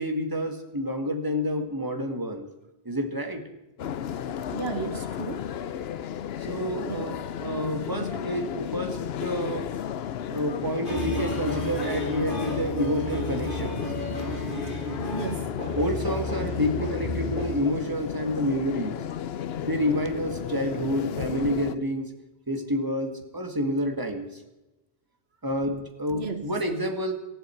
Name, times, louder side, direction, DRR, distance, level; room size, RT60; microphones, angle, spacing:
voice 1, 0.0-2.5 2.9-3.4 6.4-9.7 10.3-13.8 15.8-19.0 19.6-22.1 22.5-24.3 25.4-27.1, equal, 20° right, 5 dB, 2.0 m, -29 dB
sound 1, 3.8-21.8, left 9 dB, 70° left, 0.9 m, -34 dB
voice 2, 4.5-5.5 6.8-7.2 15.1-15.6 26.1-26.5, right 5 dB, 70° right, 8 dB, 1.5 m, -34 dB
sound 2, 10.8-17.5, left 1 dB, 50° left, 3.0 m, -32 dB
19.0 x 14.5 x 4.6 m, 0.99 s
omnidirectional pair, 1.1 m